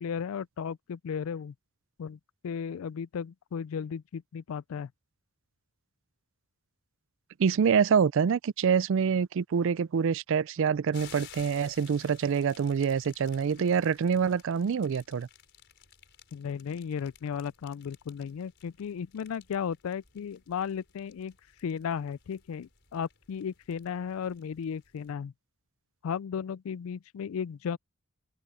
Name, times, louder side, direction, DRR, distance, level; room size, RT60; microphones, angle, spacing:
voice 1, 0.0-1.5 2.0-4.9 13.6-13.7 16.3-21.3 21.6-25.3 26.0-27.8, left 7 dB, 70° left, 0.3 m, -35 dB
voice 2, 7.4-15.3, right 6 dB, 60° right, 0.4 m, -26 dB
sound 1, 10.9-25.1, left 9 dB, 55° left, 5.3 m, -56 dB
head